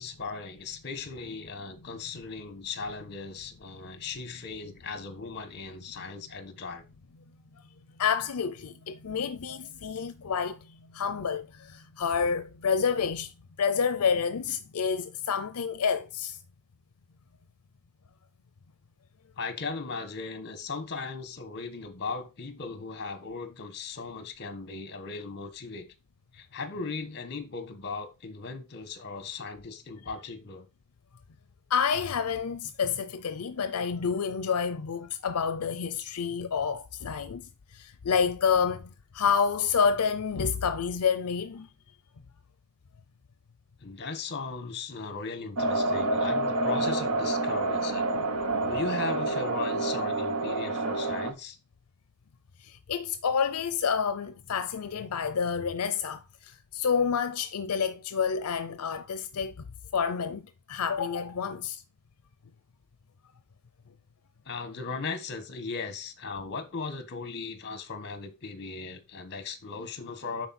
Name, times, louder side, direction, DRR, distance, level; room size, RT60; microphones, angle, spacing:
voice 1, 0.0-6.8 19.4-25.9 26.3-30.7 43.8-48.1 48.6-51.6 64.4-70.5, left 4 dB, 50° left, 1.3 m, -37 dB
voice 2, 8.0-13.3 13.6-16.4 31.7-41.7 48.2-48.3 52.6-59.5 59.9-60.4 60.7-61.8, left 6 dB, 80° left, 0.6 m, -29 dB
sound 1, 45.6-51.3, right 2 dB, 75° right, 1.2 m, -28 dB
10.0 x 4.2 x 4.2 m
head